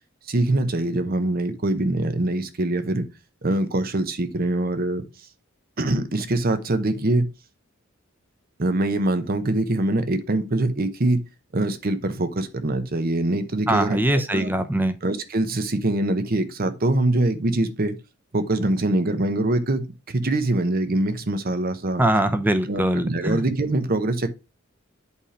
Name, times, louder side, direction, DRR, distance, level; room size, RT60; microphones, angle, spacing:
voice 1, 0.3-3.1 3.4-5.0 5.8-7.3 8.6-11.2 11.5-14.0 14.3-14.5 15.0-18.0 18.3-22.0 22.7-24.3, right 2 dB, 45° right, 0.8 m, -23 dB
voice 2, 13.7-15.0 22.0-23.5, right 1 dB, 10° right, 0.7 m, -22 dB
8.3 x 3.3 x 5.0 m
head